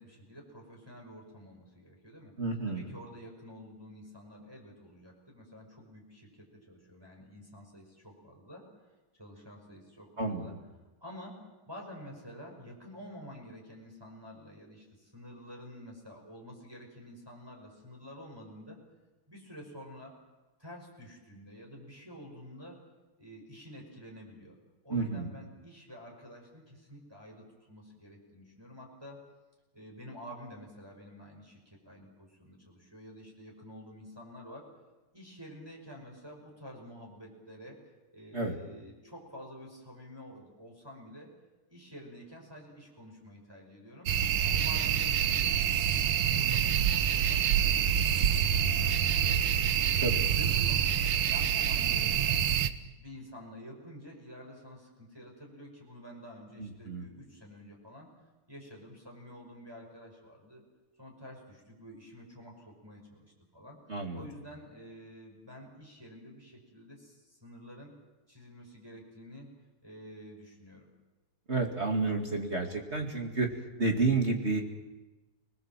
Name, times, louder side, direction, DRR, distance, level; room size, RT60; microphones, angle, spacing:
voice 1, 0.0-2.3 2.7-8.9 9.2-10.6 11.0-18.8 19.3-20.2 20.6-22.8 23.2-24.6 24.8-29.2 29.7-34.7 35.1-41.3 41.7-44.1 44.4-48.1 48.4-49.4 49.9-50.8 51.2-52.5 52.9-58.1 58.5-60.6 61.0-63.8 64.1-67.9 68.3-69.5 69.8-70.9, equal, 10° right, -1 dB, 5.6 m, -49 dB
voice 2, 2.4-2.8 10.2-10.5 24.9-25.3 38.3-38.5 50.0-50.1 56.6-57.1 63.9-64.2 71.5-73.5 73.8-74.6, right 3 dB, 30° right, 2 dB, 2.5 m, -30 dB
sound 1, 44.1-52.7, right 9 dB, 65° right, 1.7 m, -27 dB
30.0 x 21.0 x 7.5 m, 1.1 s
omnidirectional pair, 2.4 m